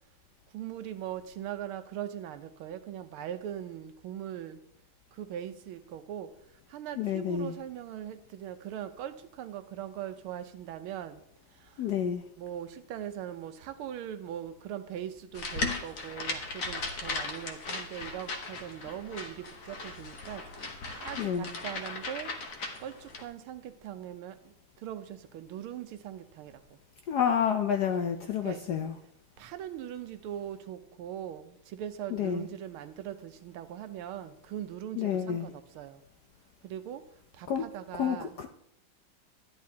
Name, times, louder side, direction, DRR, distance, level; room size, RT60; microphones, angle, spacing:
voice 1, 0.5-4.6 5.2-6.3 6.7-11.2 12.4-20.4 20.9-22.3 22.8-24.3 24.8-26.6 28.4-28.6 29.4-36.0 36.6-37.0 37.4-38.3, right 10 dB, 80° right, 10 dB, 1.6 m, -40 dB
voice 2, 7.0-7.5 11.8-12.2 21.2-21.5 27.1-29.0 32.1-32.5 34.9-35.5 37.5-37.6 37.9-38.5, left 8 dB, 70° left, 5 dB, 0.9 m, -29 dB
sound 1, 15.3-23.2, left 3 dB, 50° left, 1.2 m, -37 dB
12.5 x 10.5 x 2.8 m, 0.74 s
omnidirectional pair, 2.3 m